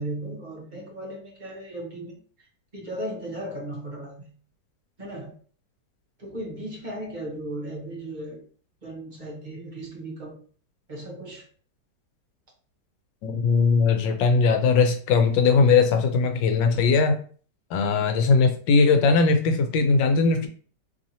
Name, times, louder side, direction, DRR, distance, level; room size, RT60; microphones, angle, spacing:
voice 1, 0.0-2.2 2.7-4.3 5.0-5.3 6.2-8.5 8.8-10.4 10.9-11.4 18.8-19.0, right 1 dB, 40° right, -2 dB, 0.7 m, -36 dB
voice 2, 13.2-17.2 17.7-20.5, left 4 dB, 80° left, 6 dB, 1.3 m, -20 dB
3.2 x 2.8 x 2.7 m, 0.43 s
omnidirectional pair, 1.9 m